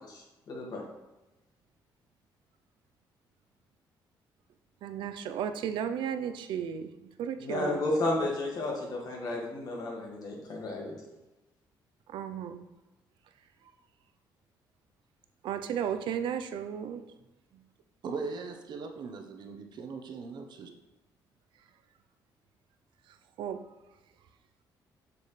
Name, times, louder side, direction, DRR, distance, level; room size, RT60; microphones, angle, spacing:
voice 1, 0.1-0.8 7.4-10.9, left 2 dB, 55° left, -1 dB, 2.0 m, -32 dB
voice 2, 4.8-8.2 12.1-12.6 15.4-17.0 23.4-23.6, right 8 dB, 80° right, 9 dB, 0.6 m, -34 dB
voice 3, 18.0-20.7, right 4 dB, 60° right, 5 dB, 1.0 m, -39 dB
7.1 x 7.0 x 3.3 m, 1.0 s
cardioid pair, 115°, 8 cm